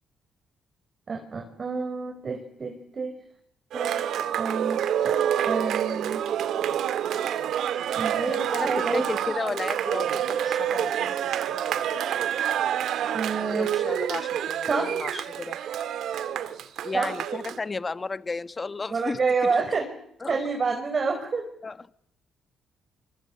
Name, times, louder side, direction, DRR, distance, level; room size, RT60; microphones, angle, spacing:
voice 1, 1.1-3.2 3.7-4.0 4.4-5.2 5.4-6.2 7.9-9.1 13.1-13.7 14.7-15.3 16.9-17.1 18.9-19.9 20.3-21.5, right 4 dB, 40° right, 4 dB, 5.0 m, -28 dB
Cheering, 3.7-17.6, right 9 dB, 75° right, 2.1 m, -28 dB
voice 2, 8.3-11.8 13.4-15.6 16.8-19.2 19.5-19.6 20.2-20.4 21.6-21.8, left 3 dB, 30° left, 14 dB, 1.3 m, -34 dB
27.0 x 24.5 x 8.6 m, 0.74 s
cardioid pair, 90°, 0 cm